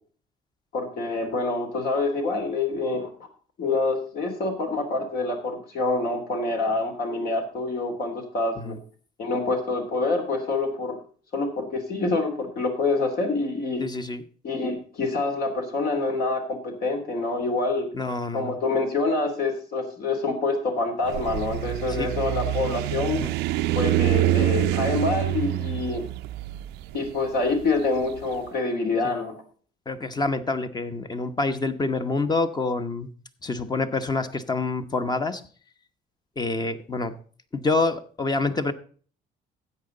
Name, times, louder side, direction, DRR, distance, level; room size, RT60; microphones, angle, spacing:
voice 1, 0.7-3.1 3.6-8.8 9.2-11.0 11.3-13.8 14.4-17.9 18.3-23.2 23.7-26.1 26.9-29.3, left 3 dB, 65° left, 4 dB, 3.2 m, -26 dB
voice 2, 13.8-14.2 17.9-18.6 21.9-22.1 23.2-23.3 29.0-29.1 29.9-33.1 33.4-35.4 36.4-37.1 37.5-38.7, left 3 dB, 25° left, 9 dB, 1.1 m, -27 dB
sound 1, 21.0-28.2, right 16 dB, 85° right, 0.5 m, -26 dB
13.0 x 8.7 x 3.9 m, 0.43 s
cardioid pair, 110°, 17 cm